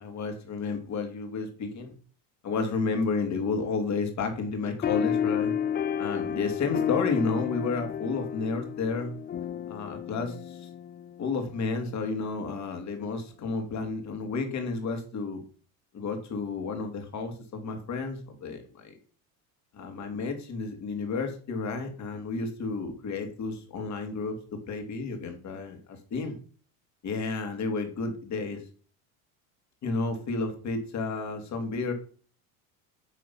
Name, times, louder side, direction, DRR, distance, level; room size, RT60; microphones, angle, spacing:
voice 1, 0.0-1.9 2.4-5.6 6.0-9.2 9.7-10.7 11.2-15.4 15.9-18.9 19.7-26.4 27.0-28.6 29.8-31.9, left 4 dB, 45° left, 5 dB, 2.5 m, -31 dB
sound 1, 4.8-11.7, left 8 dB, 25° left, 0.4 m, -31 dB
9.4 x 3.9 x 5.7 m, 0.41 s
supercardioid pair, 95°, 40 cm